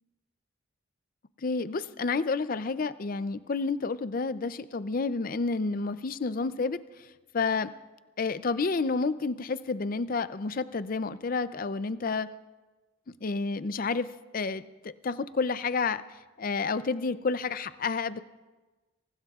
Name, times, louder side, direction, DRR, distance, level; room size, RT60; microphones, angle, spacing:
voice 1, 1.4-6.8 7.3-7.7 8.2-12.3 13.2-14.1 14.3-16.0 16.4-18.2, left 4 dB, 40° left, 14 dB, 0.5 m, -30 dB
23.5 x 19.5 x 2.4 m, 1.2 s
head